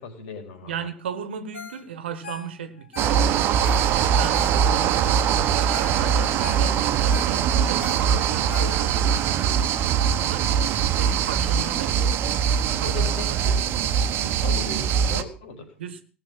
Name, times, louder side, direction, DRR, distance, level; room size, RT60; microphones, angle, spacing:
voice 1, 0.0-0.8 12.8-15.7, left 4 dB, 55° left, 4.3 m, -38 dB
voice 2, 0.6-3.3 3.8-4.5 4.8-10.5 11.0-12.0 12.6-13.4 15.8-16.0, right 7 dB, 65° right, 1.3 m, -36 dB
Ringtone, 1.5-1.8 2.1-5.0 5.4-5.5 5.7-6.0 6.3-9.1 9.6-9.7, left 4 dB, 75° left, 2.1 m, -41 dB
sound 1, 3.0-15.2, right 8 dB, 35° right, 1.2 m, -22 dB
18.0 x 6.8 x 7.3 m
figure-of-eight pair, 80°, 6 cm